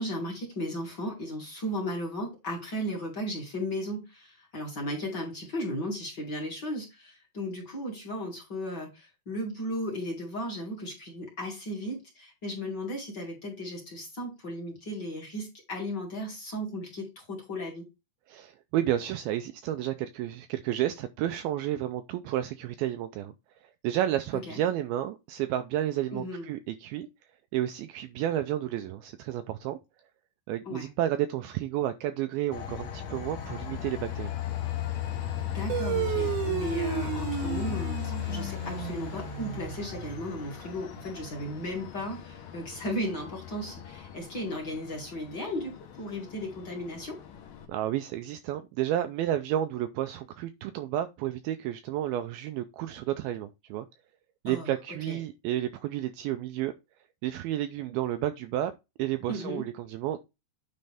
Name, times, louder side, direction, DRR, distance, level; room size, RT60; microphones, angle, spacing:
voice 1, 0.0-17.9 24.5-24.6 26.1-26.5 30.7-30.9 35.5-45.7 46.0-47.2 54.5-54.7 55.1-55.2 59.3-59.6, equal, 35° left, 2.0 m, -35 dB
voice 2, 18.3-23.3 23.6-27.1 27.5-29.8 30.5-34.3 47.7-53.9 54.4-56.7 57.2-58.7 59.0-60.2, right 12 dB, 85° right, 2.1 m, -31 dB
Train, 32.5-47.7, left 11 dB, 65° left, 2.4 m, -37 dB
sound 1, 35.7-40.6, right 11 dB, 70° right, 2.0 m, -33 dB
9.5 x 4.3 x 3.5 m
omnidirectional pair, 4.8 m